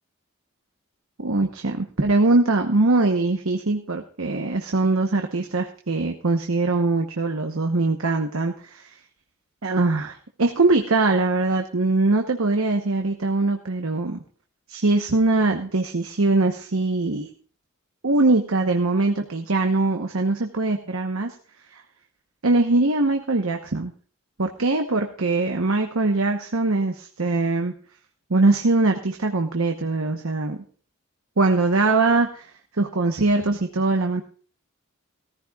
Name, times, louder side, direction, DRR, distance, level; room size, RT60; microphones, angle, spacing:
voice 1, 1.2-8.9 9.6-14.2 14.7-17.3 18.0-21.3 21.7-21.8 22.4-23.9 24.4-27.7 28.3-30.6 31.4-34.2, right 2 dB, 75° right, 4 dB, 1.0 m, -22 dB
17.5 x 14.5 x 2.4 m, 0.43 s
head